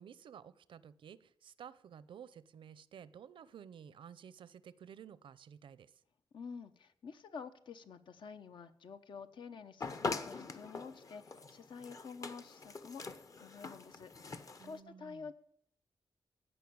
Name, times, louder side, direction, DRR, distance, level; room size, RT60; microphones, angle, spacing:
voice 1, 0.0-5.9 14.6-15.3, right 8 dB, 75° right, 18 dB, 0.6 m, -53 dB
voice 2, 6.3-13.0 13.4-15.3, left 5 dB, 65° left, 9 dB, 1.0 m, -49 dB
sound 1, 9.8-14.8, left 4 dB, 40° left, 1.0 m, -43 dB
15.5 x 5.5 x 8.7 m, 0.71 s
cardioid pair, 95°, 9 cm